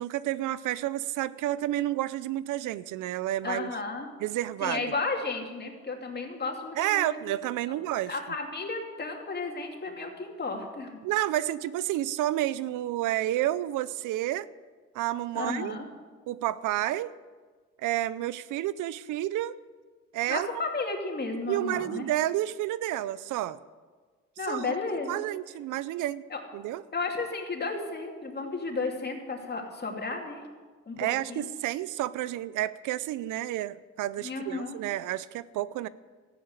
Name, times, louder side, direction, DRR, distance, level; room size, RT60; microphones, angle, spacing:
voice 1, 0.0-3.7 4.2-4.8 6.8-8.1 11.0-14.5 14.9-15.7 16.3-17.1 17.8-19.6 20.1-20.5 21.5-23.6 24.5-24.8 25.1-26.2 26.5-26.8 31.0-35.9, right 14 dB, 85° right, 18 dB, 0.6 m, -30 dB
voice 2, 3.4-4.1 4.6-7.3 7.7-7.8 8.1-11.0 15.3-15.9 20.3-22.0 24.4-25.2 26.3-26.4 26.9-30.5 30.9-31.5 34.2-34.8, left 3 dB, 35° left, 2 dB, 2.8 m, -33 dB
13.5 x 10.5 x 8.1 m, 1.4 s
cardioid pair, 90°, 30 cm